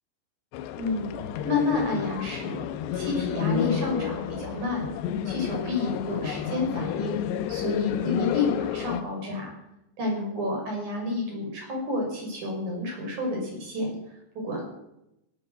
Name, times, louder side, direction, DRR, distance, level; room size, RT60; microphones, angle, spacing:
sound 1, 0.5-9.0, left 9 dB, 80° left, 2.9 m, -31 dB
voice 1, 0.8-1.1 1.4-2.6 2.9-4.9 5.3-7.2 7.5-9.5 10.0-14.0 14.4-14.7, left 3 dB, 45° right, 0 dB, 6.9 m, -29 dB
18.0 x 12.0 x 6.4 m, 0.84 s
omnidirectional pair, 5.1 m